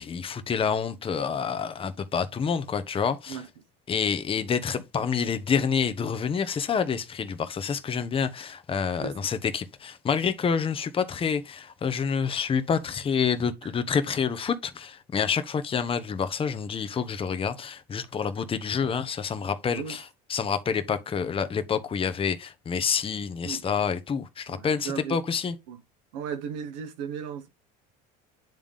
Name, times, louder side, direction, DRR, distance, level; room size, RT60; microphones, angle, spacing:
voice 1, 0.0-3.4 3.9-25.5, left 6 dB, 25° left, 0.8 m, -28 dB
voice 2, 24.5-25.2 25.7-25.8 26.1-27.5, right 7 dB, 85° right, 1.2 m, -35 dB
8.9 x 3.6 x 3.6 m
supercardioid pair, 100°, 21 cm